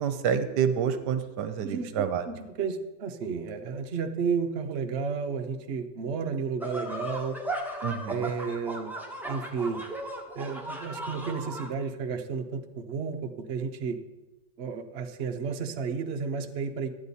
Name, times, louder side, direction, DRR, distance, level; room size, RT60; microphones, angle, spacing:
voice 1, 0.0-2.2 7.8-8.2, right 8 dB, 75° right, 10 dB, 1.3 m, -28 dB
voice 2, 1.6-7.4 8.1-8.9 9.3-9.8 10.4-14.0 14.6-16.9, right 5 dB, 55° right, 5 dB, 0.7 m, -32 dB
sound 1, 6.6-11.7, right 1 dB, ahead, 0.8 m, -36 dB
11.5 x 8.8 x 4.1 m, 1.1 s
omnidirectional pair, 1.9 m